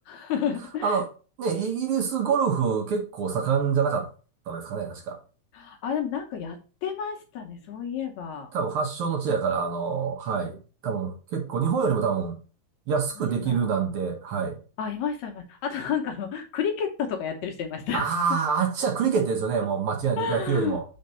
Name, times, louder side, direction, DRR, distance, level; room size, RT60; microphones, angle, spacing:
voice 1, 0.1-1.0 5.5-8.5 13.2-13.7 14.8-18.1 20.2-20.8, left 7 dB, 70° left, 1.9 m, -31 dB
voice 2, 1.4-4.1 4.5-5.2 8.5-10.6 10.8-12.4 12.9-14.6 17.9-20.8, right 6 dB, 65° right, 1.4 m, -26 dB
5.2 x 3.9 x 5.5 m
omnidirectional pair, 3.7 m